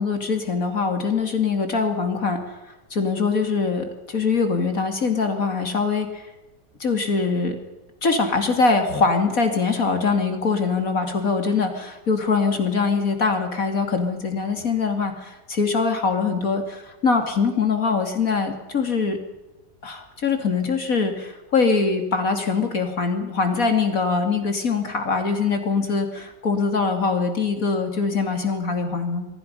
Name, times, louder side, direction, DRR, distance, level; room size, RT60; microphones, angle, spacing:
voice 1, 0.0-2.4 2.9-6.2 6.8-7.6 8.0-19.2 19.8-29.3, left 4 dB, 50° left, 5 dB, 3.0 m, -23 dB
26.5 x 23.5 x 5.6 m, 1.0 s
omnidirectional pair, 1.8 m